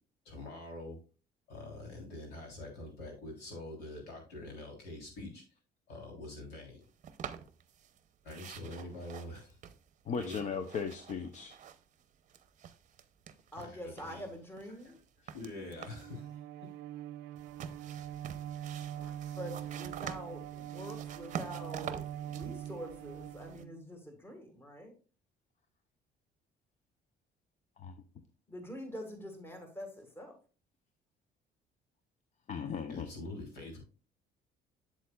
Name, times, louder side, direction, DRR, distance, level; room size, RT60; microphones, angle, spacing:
voice 1, 0.3-1.0 1.5-5.4 5.9-6.8 8.2-9.6 10.2-10.7 13.5-14.2 15.3-16.4 18.9-19.4 32.9-33.8, left 2 dB, 80° left, 0 dB, 3.6 m, -45 dB
sound 1, 7.0-8.0 8.3-12.0 12.3-13.7 14.0-16.2 17.3-23.6, right 8 dB, 45° right, 0.7 m, -47 dB
voice 2, 10.1-11.5 27.8-27.9 32.5-33.1, left 6 dB, 45° left, 8 dB, 0.7 m, -37 dB
voice 3, 13.5-15.0 19.3-24.9 28.5-30.3, equal, 15° left, 3 dB, 1.7 m, -45 dB
Bowed string instrument, 15.7-24.1, right 11 dB, 85° right, 0.4 m, -43 dB
8.1 x 7.5 x 2.3 m, 0.35 s
cardioid pair, 110°, 17 cm